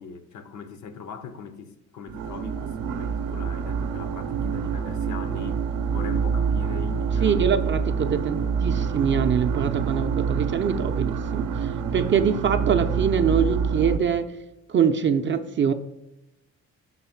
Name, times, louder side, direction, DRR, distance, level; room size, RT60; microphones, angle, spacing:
voice 1, 0.0-7.7, left 6 dB, 75° left, 0.8 m, -40 dB
sound 1, 2.1-14.0, right 6 dB, 85° right, 0.6 m, -26 dB
voice 2, 7.2-14.3 14.7-15.7, right 7 dB, 40° right, 0.4 m, -24 dB
5.5 x 4.0 x 5.6 m
cardioid pair, 90°, 30 cm